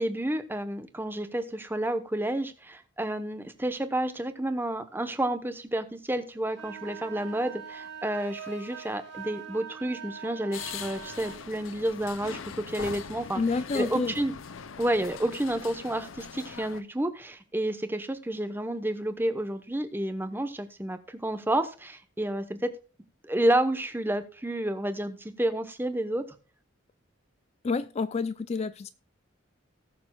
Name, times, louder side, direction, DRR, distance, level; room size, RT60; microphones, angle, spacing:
voice 1, 0.0-13.4 13.7-14.3 14.8-22.7 23.2-26.2, right 1 dB, 10° right, 10 dB, 0.9 m, -30 dB
sound 1, 6.5-11.5, right 7 dB, 60° right, 2.1 m, -43 dB
sound 2, 10.5-16.8, left 6 dB, 80° left, 0.6 m, -41 dB
voice 2, 13.3-14.1 27.6-28.9, left 4 dB, 30° left, 14 dB, 0.3 m, -29 dB
18.5 x 6.9 x 2.3 m, 0.35 s
head